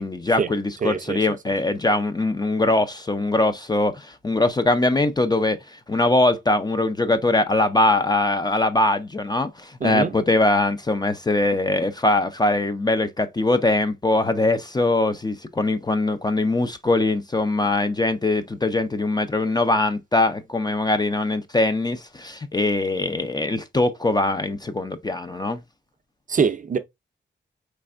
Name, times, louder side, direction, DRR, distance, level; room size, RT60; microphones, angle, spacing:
voice 1, 0.0-5.6 5.9-25.6, left 2 dB, 20° left, 0.4 m, -22 dB
voice 2, 0.8-1.2 9.8-10.2 26.3-26.8, right 5 dB, 45° right, 0.5 m, -23 dB
4.2 x 3.3 x 2.4 m
wide cardioid pair, 135°, 19 cm